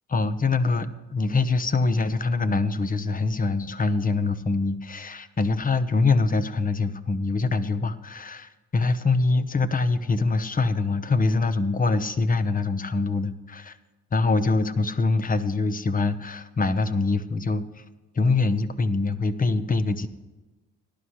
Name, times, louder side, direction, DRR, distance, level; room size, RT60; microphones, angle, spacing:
voice 1, 0.1-13.8 14.1-17.8 18.1-20.1, left 3 dB, 30° left, 11 dB, 1.0 m, -24 dB
18.5 x 11.5 x 3.2 m, 1.2 s
cardioid pair, 90°, 30 cm